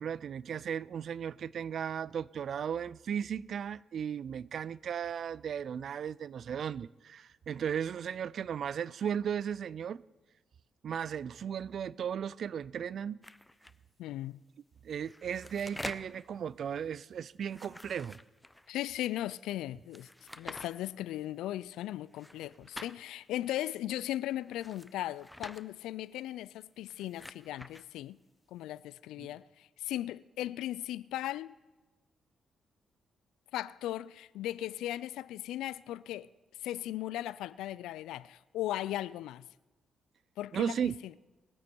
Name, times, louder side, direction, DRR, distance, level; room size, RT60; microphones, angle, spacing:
voice 1, 0.0-10.0 10.8-13.2 14.8-18.2 29.2-29.3 40.5-41.0, right 8 dB, 65° right, 0.3 m, -36 dB
sound 1, 13.2-13.7 14.9-16.2 17.4-18.7 19.9-20.7 22.1-23.0 24.5-25.6 26.8-27.8, left 1 dB, 10° left, 0.7 m, -47 dB
voice 2, 14.0-14.4 18.7-20.1 20.4-28.2 28.5-31.6 33.5-36.3 36.6-39.5 40.4-41.1, left 14 dB, 85° left, 0.3 m, -37 dB
21.0 x 8.6 x 4.6 m
supercardioid pair, 55°, 0 cm